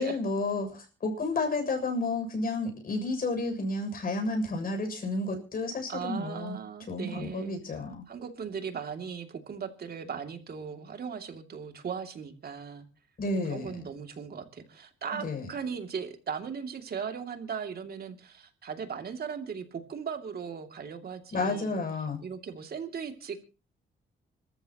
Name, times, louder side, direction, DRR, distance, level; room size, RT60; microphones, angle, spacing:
voice 1, 0.0-6.6 6.9-8.1 13.2-13.7 15.1-15.5 21.3-22.2, left 2 dB, 45° left, 4 dB, 7.1 m, -31 dB
voice 2, 5.9-12.9 13.5-21.8 22.2-23.4, right 6 dB, 50° right, 6 dB, 2.7 m, -38 dB
26.0 x 14.0 x 3.0 m, 0.35 s
cardioid pair, 90°, 20 cm